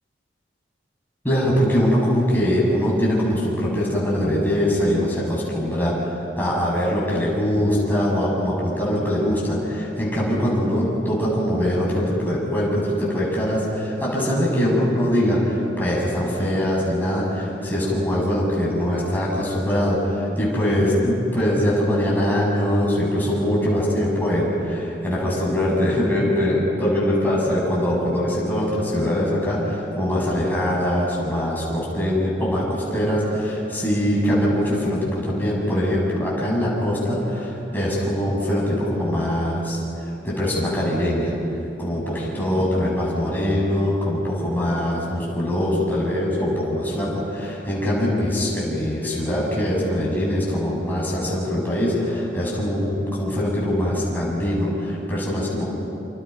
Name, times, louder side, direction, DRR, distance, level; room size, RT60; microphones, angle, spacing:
voice 1, 1.2-39.8 40.2-41.4 41.8-55.7, equal, 10° left, -5 dB, 7.1 m, -22 dB
28.0 x 27.5 x 5.4 m, 2.9 s
head